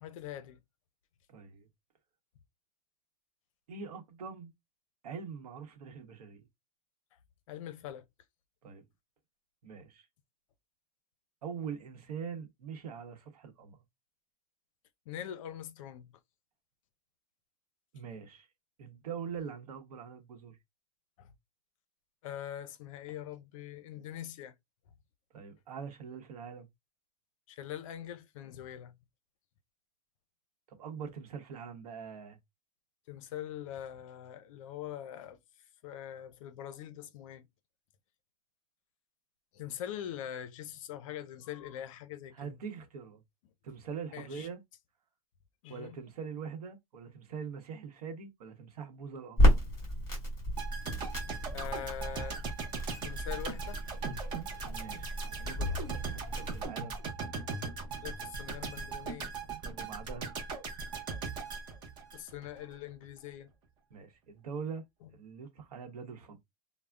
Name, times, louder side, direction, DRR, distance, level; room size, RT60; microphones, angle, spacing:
voice 1, 0.0-0.6 7.5-8.1 15.1-16.1 21.2-21.3 22.2-24.5 27.5-28.9 33.1-35.4 35.8-37.5 39.5-42.6 44.1-44.5 45.6-46.0 51.5-52.4 53.0-53.8 58.0-59.3 62.1-63.5, left 11 dB, 60° left, 0.5 m, -43 dB
voice 2, 1.3-1.7 3.7-4.5 5.0-6.5 8.6-8.8 9.6-10.1 11.4-13.8 17.9-18.5 18.8-20.6 25.3-26.7 30.7-32.4 42.3-43.2 43.6-44.6 45.7-49.7 54.7-57.0 59.6-60.3 63.9-64.8 65.1-66.4, right 6 dB, 90° right, 0.9 m, -43 dB
Crackle, 49.4-56.7, equal, 15° left, 1.9 m, -31 dB
sound 1, 50.6-62.6 62.9-63.0, right 4 dB, 25° right, 0.6 m, -39 dB
3.3 x 2.1 x 2.4 m
supercardioid pair, 150°, 19 cm